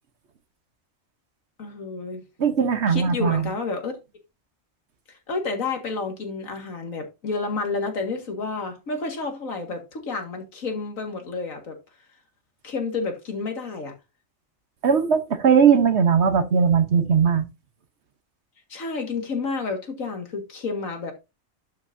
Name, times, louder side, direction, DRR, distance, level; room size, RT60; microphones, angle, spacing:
voice 1, 1.6-2.2 2.9-3.9 5.1-11.8 12.6-13.9 18.7-21.1, left 4 dB, 80° left, 2.2 m, -30 dB
voice 2, 2.4-3.5 14.8-17.4, right 6 dB, 60° right, 1.2 m, -19 dB
11.5 x 6.0 x 2.6 m
omnidirectional pair, 1.4 m